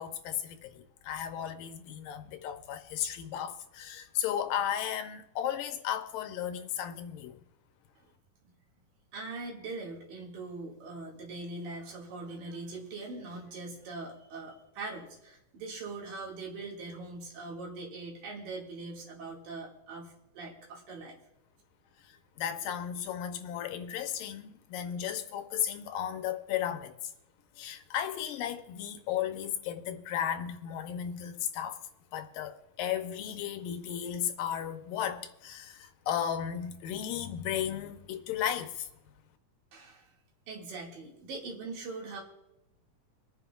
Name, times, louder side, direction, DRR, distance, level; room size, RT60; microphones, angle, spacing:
voice 1, 0.0-7.4 22.4-26.9 27.6-31.8 32.1-38.9, left 9 dB, 85° left, 2.5 m, -35 dB
voice 2, 9.1-21.2 39.7-40.0 40.5-42.2, right 3 dB, 75° right, 3.7 m, -41 dB
25.5 x 9.4 x 2.3 m
omnidirectional pair, 4.0 m